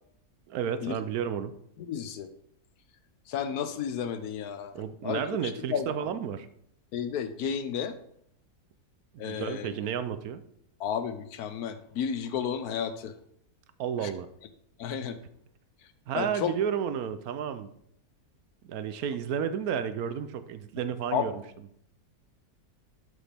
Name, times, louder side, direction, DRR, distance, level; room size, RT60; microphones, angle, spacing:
voice 1, 0.5-1.5 4.7-6.5 9.1-10.4 13.8-14.3 16.1-17.7 18.6-21.4, right 8 dB, 75° right, 11 dB, 1.1 m, -32 dB
voice 2, 1.8-2.3 3.3-5.9 6.9-8.0 9.2-9.7 10.8-13.1 14.0-14.1 14.8-15.2 16.1-16.5 21.1-21.3, left 8 dB, 80° left, 10 dB, 1.2 m, -32 dB
11.5 x 5.0 x 3.4 m, 0.69 s
omnidirectional pair, 1.6 m